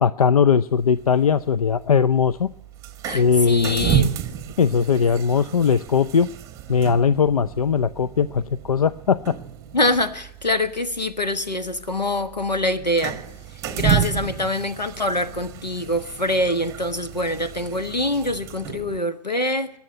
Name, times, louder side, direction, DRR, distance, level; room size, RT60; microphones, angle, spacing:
voice 1, 0.0-2.5 3.1-4.0 4.6-6.3 6.7-9.4, left 6 dB, 60° left, 0.5 m, -19 dB
sound 1, 0.7-19.0, right 10 dB, 15° right, 0.9 m, -31 dB
voice 2, 3.0-4.1 9.7-13.2 13.7-19.7, left 1 dB, 85° left, 1.3 m, -24 dB
21.0 x 7.1 x 9.6 m
figure-of-eight pair, 125°, 21 cm